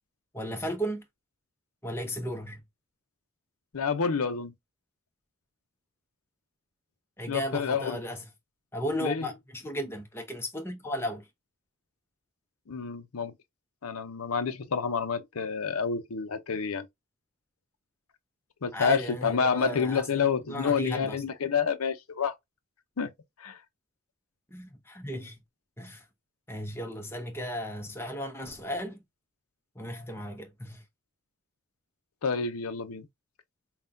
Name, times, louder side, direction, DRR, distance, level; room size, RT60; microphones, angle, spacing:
voice 1, 0.3-1.0 1.8-2.6 7.2-8.3 8.7-11.3 18.7-21.2 24.5-25.4 25.8-26.0 26.5-29.0 29.7-30.8, equal, 10° left, 0.8 m, -35 dB
voice 2, 3.7-4.5 7.3-8.0 9.0-9.3 12.7-13.3 13.8-16.9 18.6-22.3 23.0-23.1 23.4-23.6 32.2-33.1, left 5 dB, 80° left, 0.6 m, -28 dB
5.6 x 2.3 x 2.6 m
head